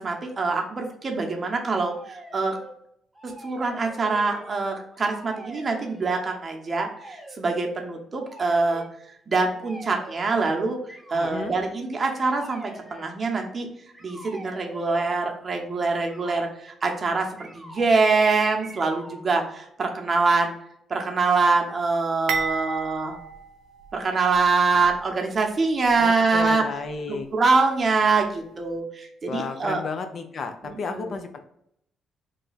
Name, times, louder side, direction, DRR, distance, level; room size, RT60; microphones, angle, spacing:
voice 1, 0.0-2.6 3.2-8.8 9.3-10.8 11.1-12.6 12.9-13.7 14.0-17.3 17.5-20.5 20.9-23.2 23.9-26.6 27.1-29.8 30.6-31.1, right 4 dB, 40° right, 2 dB, 0.8 m, -24 dB
sound 1, 1.8-2.7 3.1-4.6 4.9-6.2 6.9-7.4 8.2-8.9 9.6-10.3 10.9-11.6 12.1-13.1 13.9-15.1 16.0-16.5 17.4-18.2 18.6-19.2, right 1 dB, 5° right, 0.9 m, -44 dB
voice 2, 11.1-11.5 26.0-27.3 29.3-31.4, left 4 dB, 55° left, 7 dB, 0.5 m, -33 dB
sound 2, 22.3-24.4 24.8-25.0 25.8-26.0, right 5 dB, 75° right, 0.5 m, -32 dB
3.1 x 2.3 x 3.9 m, 0.74 s
cardioid pair, 90°, 0 cm